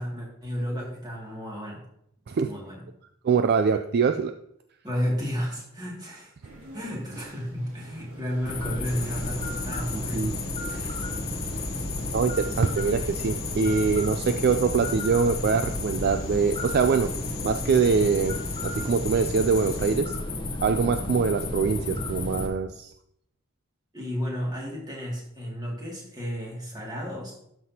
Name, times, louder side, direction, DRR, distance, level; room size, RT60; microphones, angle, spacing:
voice 1, 0.0-1.9 2.4-2.8 4.8-6.3 6.7-10.3 12.5-12.7 23.9-27.4, equal, 20° right, -3 dB, 2.3 m, -32 dB
voice 2, 3.2-4.3 9.9-10.3 10.7-11.0 12.1-17.1 17.4-18.4 18.6-20.2 20.6-22.9, right 5 dB, 45° right, 8 dB, 0.3 m, -24 dB
sound 1, 6.4-13.3, right 2 dB, 75° right, 2.3 m, -47 dB
sound 2, 8.4-22.5, left 2 dB, 20° left, 0.9 m, -32 dB
sound 3, 8.8-20.0, left 3 dB, 45° left, 1.3 m, -40 dB
12.5 x 5.9 x 2.8 m, 0.75 s
head